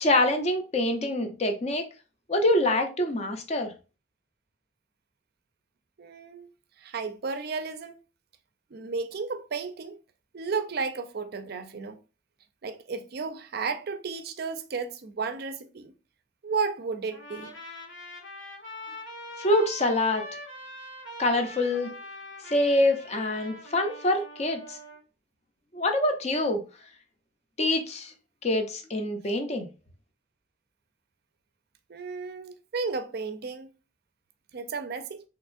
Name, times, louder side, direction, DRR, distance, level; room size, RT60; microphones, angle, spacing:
voice 1, 0.0-1.9 2.3-3.7 19.4-20.2 21.2-21.9 22.5-24.8 25.7-26.6 27.6-28.1 28.4-29.7, left 1 dB, 35° left, 0.5 m, -25 dB
voice 2, 6.0-6.5 6.8-8.0 8.7-10.0 10.3-12.0 12.6-15.9 16.4-17.5 31.9-33.7 34.5-35.2, right 4 dB, 50° right, 0.4 m, -33 dB
Trumpet, 17.1-25.0, left 1 dB, 70° left, 1.1 m, -43 dB
3.4 x 2.9 x 2.4 m
head